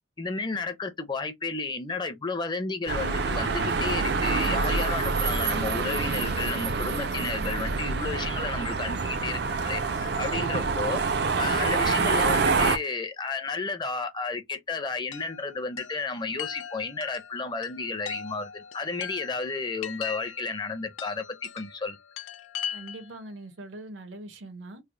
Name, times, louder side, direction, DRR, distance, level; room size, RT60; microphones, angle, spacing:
voice 1, 0.2-11.0 11.4-22.0, left 4 dB, 25° left, 0.5 m, -32 dB
sound 1, 2.9-12.8, right 4 dB, 55° right, 0.4 m, -26 dB
Chime, 15.1-23.2, left 8 dB, 90° left, 0.5 m, -40 dB
voice 2, 22.7-24.8, right 2 dB, 80° right, 0.8 m, -42 dB
3.2 x 2.1 x 3.7 m
head